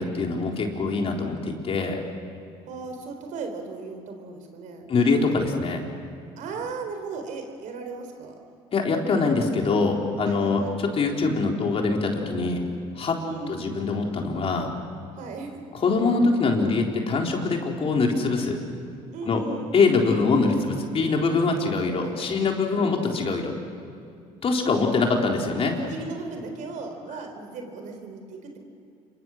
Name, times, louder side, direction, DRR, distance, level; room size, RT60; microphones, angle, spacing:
voice 1, 0.0-2.0 4.9-5.8 8.7-12.6 13.0-13.2 13.5-14.7 15.8-18.6 19.3-19.4 19.7-23.5 24.4-25.8, left 4 dB, 45° left, 1 dB, 3.9 m, -23 dB
voice 2, 2.7-4.9 6.4-8.3 10.2-10.8 13.2-13.7 15.1-15.6 19.1-19.7 22.0-22.5 22.7-23.1 24.8-25.2 25.8-28.6, right 4 dB, 65° right, 5 dB, 4.2 m, -37 dB
27.0 x 23.5 x 6.4 m, 2.3 s
supercardioid pair, 80°, 14 cm